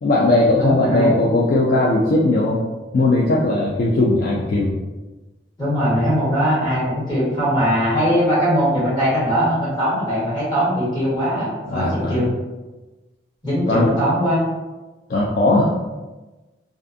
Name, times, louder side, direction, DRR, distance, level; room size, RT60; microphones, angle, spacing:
voice 1, 0.0-2.6 2.9-4.8 11.7-12.2 13.7-13.9 15.1-15.7, left 2 dB, 50° left, -5 dB, 0.3 m, -18 dB
voice 2, 0.6-1.1 5.6-12.3 13.4-14.4, equal, 25° left, -10 dB, 1.3 m, -20 dB
2.5 x 2.4 x 2.5 m, 1.1 s
head